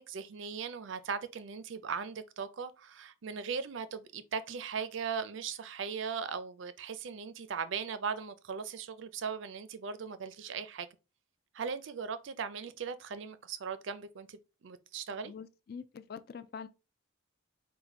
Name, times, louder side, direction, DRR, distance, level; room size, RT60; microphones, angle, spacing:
voice 1, 0.0-10.9 11.5-15.3, right 6 dB, 70° right, 0.4 m, -38 dB
voice 2, 15.2-16.7, left 6 dB, 50° left, 0.3 m, -44 dB
4.0 x 2.1 x 4.4 m
head